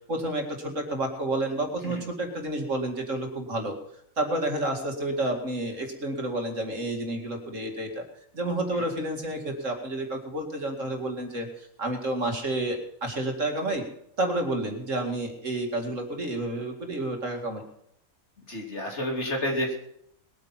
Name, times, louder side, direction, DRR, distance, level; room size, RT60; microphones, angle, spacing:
voice 1, 0.1-3.8 4.2-8.1 8.3-13.9 14.2-17.6, right 1 dB, 65° right, 3 dB, 2.7 m, -30 dB
voice 2, 18.5-19.8, left 1 dB, 55° left, 1 dB, 3.4 m, -29 dB
21.0 x 9.0 x 5.8 m, 0.74 s
omnidirectional pair, 1.4 m